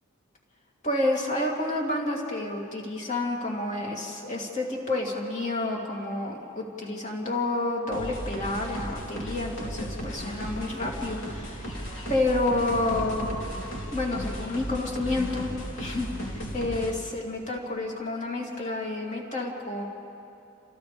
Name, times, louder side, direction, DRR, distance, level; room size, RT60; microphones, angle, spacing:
voice 1, 0.8-11.7 12.1-13.3 13.9-15.5 15.8-19.8, left 2 dB, 35° left, -2 dB, 3.1 m, -29 dB
sound 1, 7.9-16.9, equal, 60° left, 3.4 m, -35 dB
29.0 x 27.5 x 3.5 m, 2.8 s
head